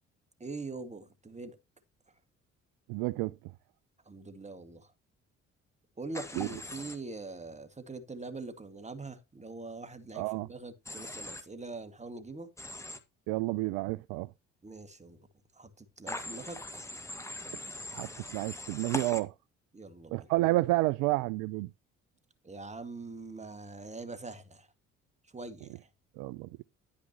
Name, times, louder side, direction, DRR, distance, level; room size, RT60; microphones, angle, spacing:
voice 1, 0.4-1.6 4.1-4.9 6.0-12.5 14.6-15.2 15.6-16.6 19.7-20.3 22.4-24.7 25.3-25.7, right 3 dB, 20° right, 2.0 m, -43 dB
voice 2, 2.9-3.3 6.4-6.6 10.1-10.5 13.3-14.3 17.9-19.3 20.1-21.7 26.2-26.5, right 20 dB, 55° right, 0.5 m, -30 dB
Human voice / Train, 6.1-7.0 10.9-11.4 12.6-13.0 16.1-19.2, left 1 dB, 5° left, 1.7 m, -41 dB
10.5 x 9.4 x 2.9 m
figure-of-eight pair, 45°, 38 cm